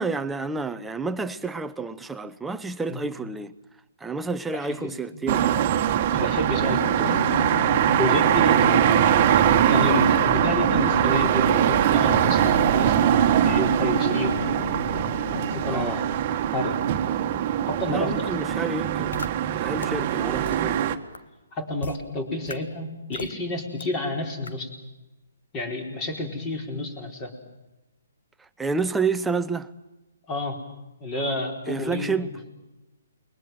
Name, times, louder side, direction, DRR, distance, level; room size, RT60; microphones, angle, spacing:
voice 1, 0.0-3.5 4.0-5.6 15.7-16.0 17.9-19.2 19.6-20.8 28.4-29.7 31.7-32.3, right 4 dB, 5° right, 0.8 m, -29 dB
voice 2, 4.5-5.4 6.1-7.2 8.0-14.7 15.4-16.2 16.5-16.8 17.6-18.7 21.5-24.7 25.5-27.3 30.3-30.6 31.0-32.3, left 2 dB, 20° left, 4.4 m, -30 dB
sound 1, 5.3-21.0, right 10 dB, 35° right, 1.6 m, -22 dB
Drum, 7.0-15.9, left 5 dB, 70° left, 1.6 m, -33 dB
sound 2, 19.1-19.3 19.8-19.9 20.5-20.6 21.1-21.2 21.8-22.0 22.5-22.6 23.1-23.3 23.8-23.9 24.5-24.6, left 4 dB, 90° left, 1.5 m, -34 dB
29.0 x 22.0 x 7.6 m
hypercardioid pair, 160°, 0 cm